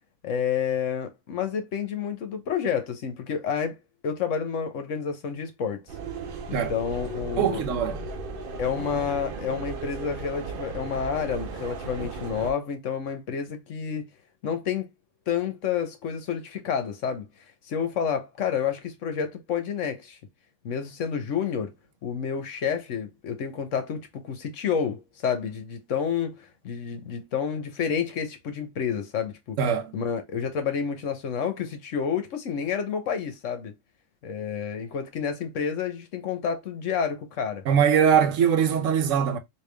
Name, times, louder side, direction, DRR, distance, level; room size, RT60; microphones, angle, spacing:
voice 1, 0.2-3.8 4.0-5.8 6.5-7.6 8.6-14.1 14.4-14.9 15.3-17.3 17.7-20.2 20.6-21.7 22.0-29.6 29.9-33.7 34.2-37.6, left 7 dB, 65° left, 1.2 m, -29 dB
sound 1, 5.9-12.5, right 4 dB, 55° right, 0.6 m, -36 dB
voice 2, 7.4-8.0 29.6-29.9 37.6-39.4, right 8 dB, 70° right, 1.0 m, -22 dB
3.4 x 2.7 x 3.2 m
omnidirectional pair, 1.4 m